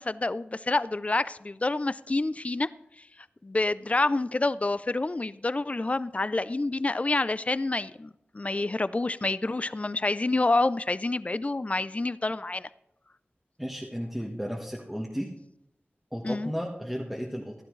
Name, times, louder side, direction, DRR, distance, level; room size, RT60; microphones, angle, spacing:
voice 1, 0.0-2.7 3.4-12.7 16.2-16.5, left 2 dB, 35° left, 16 dB, 0.4 m, -28 dB
voice 2, 13.6-15.3 16.1-17.5, equal, ahead, -2 dB, 1.3 m, -34 dB
15.0 x 11.5 x 3.2 m, 0.85 s
wide cardioid pair, 70°, 4 cm